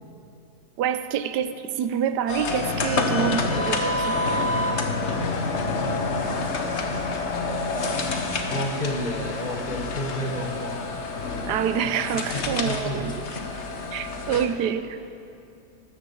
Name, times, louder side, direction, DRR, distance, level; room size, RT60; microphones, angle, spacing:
voice 1, 0.8-4.5 11.5-13.1 13.9-15.0, right 8 dB, 90° right, 11 dB, 1.3 m, -27 dB
sound 1, 2.3-14.5, left 3 dB, 45° left, 1.3 m, -28 dB
voice 2, 3.1-3.5 4.7-5.8 8.5-11.1 11.8-13.1, left 1 dB, 30° left, 3 dB, 1.0 m, -32 dB
13.0 x 11.5 x 7.1 m, 2.7 s
omnidirectional pair, 1.7 m